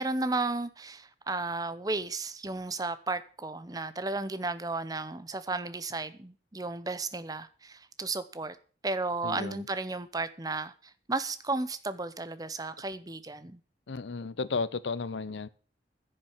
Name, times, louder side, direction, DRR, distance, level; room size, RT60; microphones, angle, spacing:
voice 1, 0.0-8.6 8.8-13.6, right 3 dB, 20° right, 0.8 m, -34 dB
voice 2, 9.2-9.6 13.9-15.5, left 4 dB, 80° left, 0.6 m, -33 dB
10.0 x 6.7 x 8.8 m
head